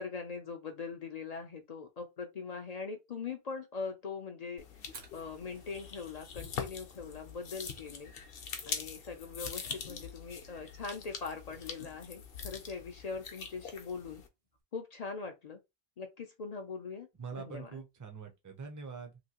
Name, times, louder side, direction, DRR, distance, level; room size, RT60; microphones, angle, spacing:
voice 1, 0.0-4.8 5.1-8.1 8.7-14.2 14.7-15.6 16.0-17.1 17.3-17.7, left 5 dB, 50° left, 0.5 m, -41 dB
sound 1, 4.6-14.3, left 6 dB, 70° left, 0.9 m, -44 dB
Fire, 4.9-14.6, right 4 dB, 60° right, 1.0 m, -61 dB
voice 2, 17.2-19.2, right 5 dB, 25° right, 0.5 m, -44 dB
2.9 x 2.6 x 2.8 m
omnidirectional pair, 1.0 m